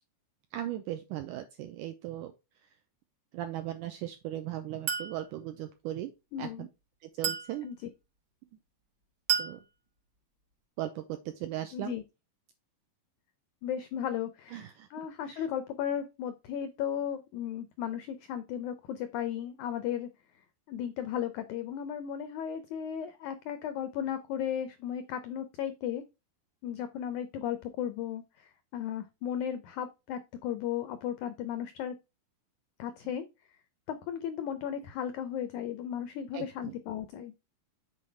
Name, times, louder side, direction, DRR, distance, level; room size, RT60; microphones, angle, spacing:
voice 1, 0.5-2.3 3.3-6.1 6.4-6.7 7.2-7.7 9.4-9.6 10.8-12.0 14.5-14.9 15.3-15.5 36.3-36.7, right 13 dB, 85° right, 8 dB, 1.8 m, -37 dB
Chink clink, 4.9-5.2 7.2-7.6 9.3-9.6, right 7 dB, 70° right, 1.2 m, -30 dB
voice 2, 6.3-6.7 7.6-7.8 11.7-12.0 13.6-14.6 14.9-20.1 20.7-26.0 26.6-28.2 28.7-31.9 32.8-33.2 33.9-37.3, left 9 dB, 85° left, 10 dB, 1.7 m, -35 dB
7.6 x 4.5 x 4.6 m, 0.25 s
omnidirectional pair, 4.3 m